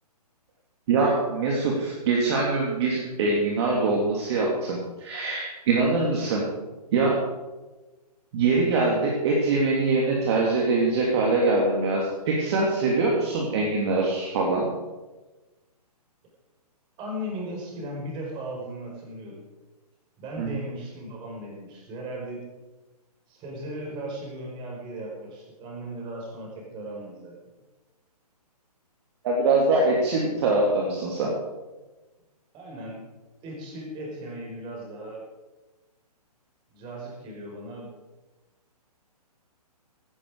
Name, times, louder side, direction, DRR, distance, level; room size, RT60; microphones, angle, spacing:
voice 1, 0.9-6.5 6.9-7.2 8.3-14.7 20.4-20.5 29.2-31.3, right 3 dB, 40° right, -2 dB, 3.1 m, -23 dB
voice 2, 17.0-19.4 20.2-22.5 23.3-27.4 32.5-33.0 33.4-35.2 36.7-37.9, right 1 dB, 25° right, -1 dB, 5.0 m, -37 dB
16.5 x 12.5 x 4.9 m, 1.1 s
hypercardioid pair, 135°, 20 cm